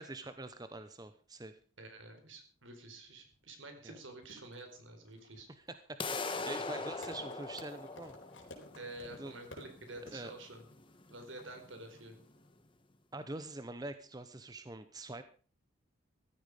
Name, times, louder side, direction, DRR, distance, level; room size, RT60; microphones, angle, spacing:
voice 1, 0.0-1.6 3.8-4.0 5.6-8.2 9.2-9.3 10.1-10.3 13.1-15.2, right 2 dB, 20° right, 10 dB, 0.8 m, -45 dB
voice 2, 1.8-5.5 6.7-6.8 8.7-10.6 11.1-12.2, right 2 dB, 70° right, 6 dB, 4.4 m, -49 dB
sound 1, 4.2-12.5, left 2 dB, 70° left, 4.2 m, -55 dB
sound 2, 6.0-12.0, left 3 dB, 25° left, 1.4 m, -42 dB
16.0 x 13.5 x 5.0 m, 0.39 s
head